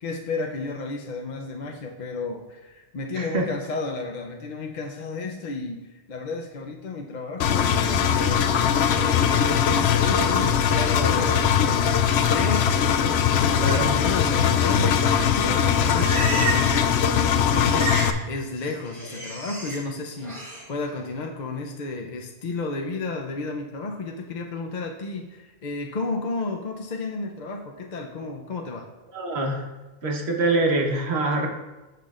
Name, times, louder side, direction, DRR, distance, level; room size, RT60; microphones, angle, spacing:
voice 1, 0.0-8.5 8.9-11.4 12.0-28.9, left 3 dB, 50° left, 2 dB, 0.7 m, -33 dB
voice 2, 3.1-3.5 13.6-13.9 29.1-29.6 30.0-31.5, right 2 dB, 80° right, 2 dB, 1.5 m, -24 dB
Engine, 7.4-18.1, left 8 dB, 85° left, 0.8 m, -21 dB
Livestock farm animals working animals, 15.7-16.9 17.1-18.2 18.5-19.8 20.2-20.6, right 2 dB, 40° right, 3.1 m, -31 dB
13.5 x 5.9 x 2.5 m, 1.1 s
omnidirectional pair, 1.1 m